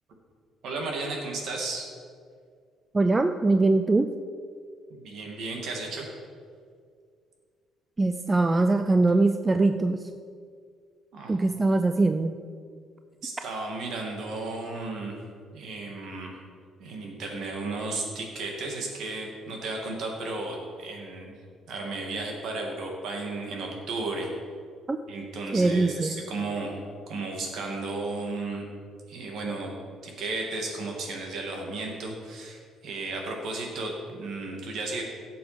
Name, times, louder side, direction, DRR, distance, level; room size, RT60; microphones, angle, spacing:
voice 1, 0.6-1.9 4.9-6.1 11.1-11.5 13.2-15.2 15.5-16.4 16.8-21.3 21.7-24.3 25.1-28.6 29.1-29.7 30.0-35.0, right 3 dB, 55° right, 1 dB, 2.4 m, -34 dB
voice 2, 2.9-4.1 8.0-10.0 11.3-12.4 24.9-25.0 25.5-26.2, right 2 dB, 15° right, 7 dB, 0.4 m, -22 dB
16.5 x 7.1 x 5.2 m, 2.1 s
cardioid pair, 165°, 0 cm